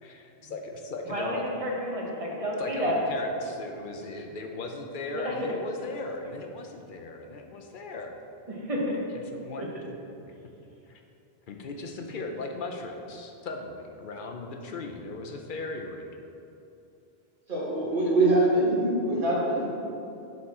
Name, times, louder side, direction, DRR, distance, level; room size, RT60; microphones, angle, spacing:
voice 1, 0.0-1.5 2.6-8.2 9.3-9.8 10.3-10.4 10.9-11.0 11.5-16.1 17.8-18.1, left 3 dB, 60° left, 3 dB, 0.7 m, -38 dB
voice 2, 1.1-2.9 5.1-5.4 8.5-9.0 9.6-9.7, equal, 35° right, -3 dB, 1.0 m, -30 dB
voice 3, 17.5-19.7, right 2 dB, 55° right, -6 dB, 1.7 m, -24 dB
6.5 x 4.2 x 4.1 m, 2.8 s
omnidirectional pair, 1.1 m